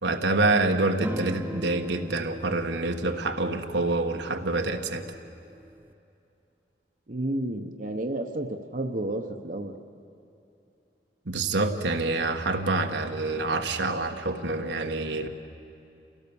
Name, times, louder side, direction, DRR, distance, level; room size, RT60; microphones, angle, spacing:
voice 1, 0.0-5.2 11.2-15.3, right 2 dB, 85° right, 5 dB, 1.3 m, -27 dB
sound 1, 1.0-5.9, right 1 dB, 10° right, 0.5 m, -39 dB
voice 2, 7.1-9.7, right 1 dB, 50° right, 5 dB, 0.9 m, -31 dB
29.0 x 17.0 x 7.0 m, 2.8 s
head